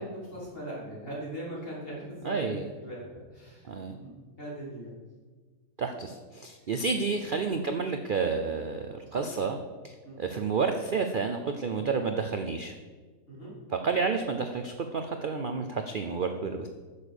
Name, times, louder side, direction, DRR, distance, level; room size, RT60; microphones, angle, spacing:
voice 1, 0.0-4.1 4.4-4.9 5.8-6.0 6.6-6.7 9.1-9.4 10.0-10.3 13.3-13.5, right 1 dB, 40° left, -6 dB, 4.2 m, -40 dB
voice 2, 2.2-2.6 3.7-3.9 5.8-9.6 9.8-12.7 13.8-16.7, right 5 dB, 50° right, 7 dB, 0.6 m, -30 dB
9.9 x 7.0 x 6.5 m, 1.4 s
omnidirectional pair, 1.5 m